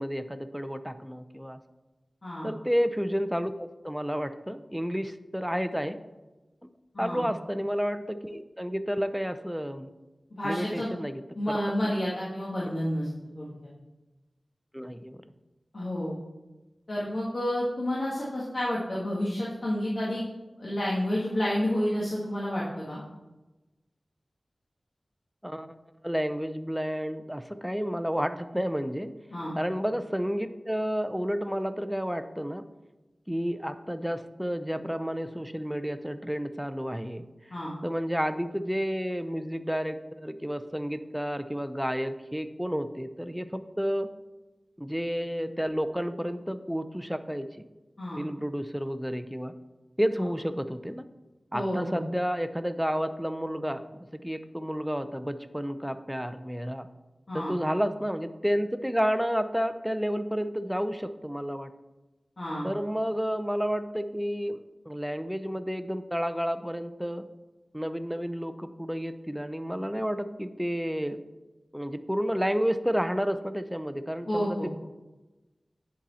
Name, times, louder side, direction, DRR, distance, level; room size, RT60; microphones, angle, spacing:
voice 1, 0.0-1.6 2.4-6.0 7.0-9.9 10.4-11.6 14.7-15.2 25.4-25.7 26.0-29.1 29.6-32.7 33.3-37.2 37.8-44.1 44.8-47.7 48.2-49.5 50.0-51.0 51.5-56.9 57.3-61.7 62.6-67.3 67.7-71.2 71.7-74.7, equal, 5° right, 11 dB, 0.5 m, -31 dB
voice 2, 10.4-10.9 11.3-13.1 13.3-13.5 15.7-16.2 16.9-20.2 20.6-23.0 29.3-29.5 37.5-37.7 48.0-48.2 51.5-52.0 57.3-57.5 62.4-62.7 74.2-74.7, left 1 dB, 55° left, -7 dB, 1.6 m, -30 dB
10.0 x 4.1 x 4.1 m, 1.1 s
wide cardioid pair, 55°, 0 cm